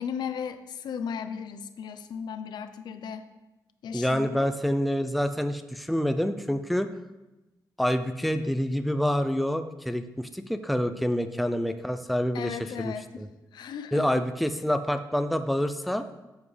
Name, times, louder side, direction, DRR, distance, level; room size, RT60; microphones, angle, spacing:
voice 1, 0.0-3.3 3.8-4.5 12.3-14.3, left 7 dB, 80° left, 10 dB, 0.6 m, -36 dB
voice 2, 3.9-6.9 7.8-13.3 13.9-16.0, equal, ahead, 8 dB, 0.4 m, -27 dB
12.5 x 7.3 x 3.3 m, 1.0 s
wide cardioid pair, 165°, 7 cm